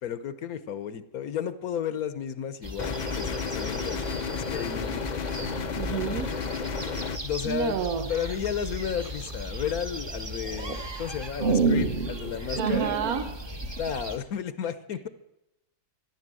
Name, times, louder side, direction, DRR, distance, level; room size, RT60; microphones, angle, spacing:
voice 1, 0.0-5.1 7.2-7.8 8.1-13.0 13.8-15.1, left 8 dB, 75° left, 13 dB, 1.3 m, -33 dB
sound 1, 2.6-14.2, equal, 20° right, 0.8 m, -37 dB
sound 2, 2.8-7.2, left 6 dB, 50° left, 0.5 m, -32 dB
sound 3, 5.3-7.0 8.1-8.5 9.0-9.9 10.5-13.9, right 4 dB, 35° right, 1.4 m, -30 dB
voice 2, 5.8-6.3 7.4-8.1 12.6-13.3, right 8 dB, 75° right, 8 dB, 1.4 m, -29 dB
13.5 x 11.5 x 7.6 m, 0.91 s
omnidirectional pair, 1.6 m